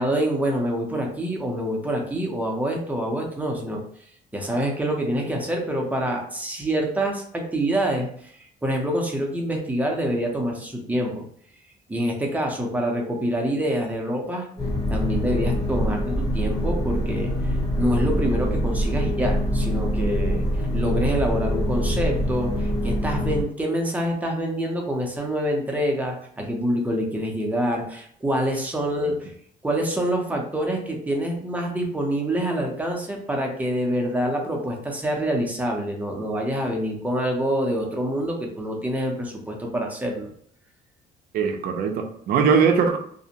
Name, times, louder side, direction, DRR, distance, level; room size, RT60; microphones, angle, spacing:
voice 1, 0.0-3.8 4.3-8.3 8.6-11.2 11.9-14.5 14.9-20.4 20.7-29.3 29.6-40.3, equal, 10° right, 1 dB, 0.6 m, -26 dB
sound 1, 14.6-23.4, equal, 20° left, 1.2 m, -24 dB
voice 2, 41.3-43.0, right 6 dB, 60° right, 5 dB, 0.4 m, -21 dB
2.5 x 2.1 x 2.7 m, 0.65 s
cardioid pair, 110°, 17 cm